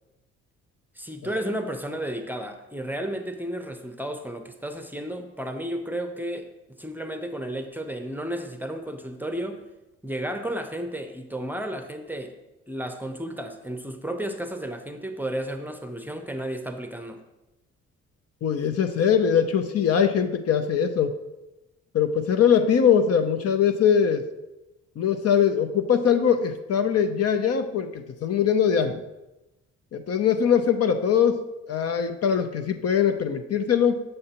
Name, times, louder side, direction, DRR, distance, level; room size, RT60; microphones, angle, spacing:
voice 1, 1.0-6.5 6.8-9.6 10.0-12.3 12.7-17.2, right 1 dB, 5° right, 6 dB, 0.6 m, -33 dB
voice 2, 18.4-21.2 21.9-24.3 25.0-29.0 29.9-34.0, left 7 dB, 55° left, 8 dB, 0.6 m, -22 dB
7.8 x 6.5 x 2.9 m, 0.99 s
cardioid pair, 90°, 30 cm